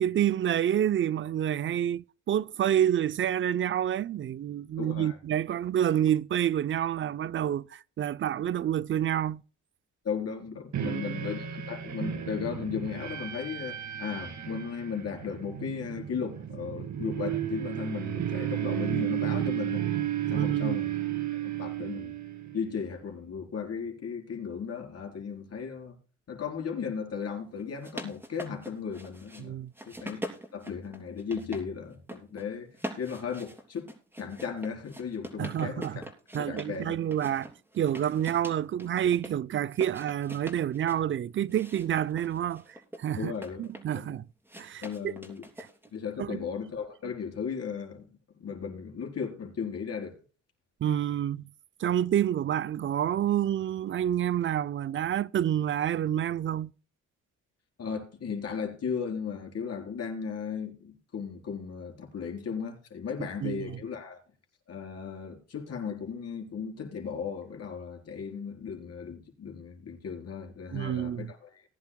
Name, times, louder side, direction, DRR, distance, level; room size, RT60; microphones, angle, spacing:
voice 1, 0.0-9.4 10.8-11.2 20.3-20.8 29.4-29.7 35.4-36.0 36.3-42.6 43.0-43.3 43.6-44.3 44.6-45.1 45.6-45.7 46.2-46.4 50.8-51.4 51.8-56.7 63.4-63.7 70.7-71.3, right 10 dB, 40° right, 0.5 m, -28 dB
voice 2, 4.8-5.2 10.0-19.9 20.3-20.9 21.3-22.2 22.5-26.0 26.3-29.6 29.9-30.2 30.5-32.7 33.0-33.9 34.2-36.0 36.3-37.0 37.3-37.4 38.2-38.3 43.2-43.7 44.0-44.2 44.8-45.4 45.9-48.1 48.4-50.2 57.8-64.2 64.7-71.6, left 6 dB, 55° left, 4.1 m, -36 dB
sound 1, 10.7-22.8, right 11 dB, 65° right, 2.0 m, -33 dB
sound 2, 27.6-29.4 29.7-31.6 31.9-32.4 32.7-36.8 37.1-39.3 39.7-41.0 41.5-44.0 44.5-46.0, equal, 5° right, 3.1 m, -43 dB
19.5 x 10.5 x 2.2 m
cardioid pair, 90°, 30 cm